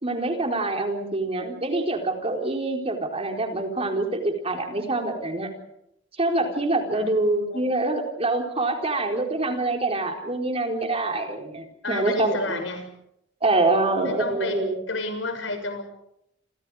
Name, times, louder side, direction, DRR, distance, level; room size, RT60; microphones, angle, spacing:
voice 1, 0.0-5.5 6.2-12.6 13.4-14.8, right 2 dB, 30° right, 3 dB, 4.2 m, -25 dB
voice 2, 11.8-12.9 14.0-14.6 14.9-15.8, left 2 dB, 80° left, 7 dB, 6.6 m, -30 dB
29.5 x 26.5 x 5.0 m, 0.77 s
head